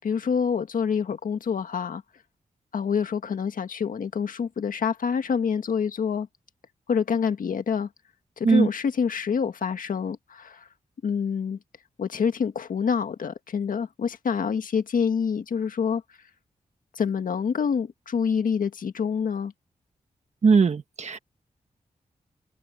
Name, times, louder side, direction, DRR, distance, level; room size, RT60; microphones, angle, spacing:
voice 1, 0.0-2.0 2.7-6.3 6.9-7.9 8.4-10.6 11.0-11.6 12.0-16.0 16.9-19.5, left 6 dB, 75° left, 1.7 m, -26 dB
voice 2, 20.4-21.2, right 5 dB, 55° right, 1.4 m, -19 dB
wide cardioid pair, 90°, 14 cm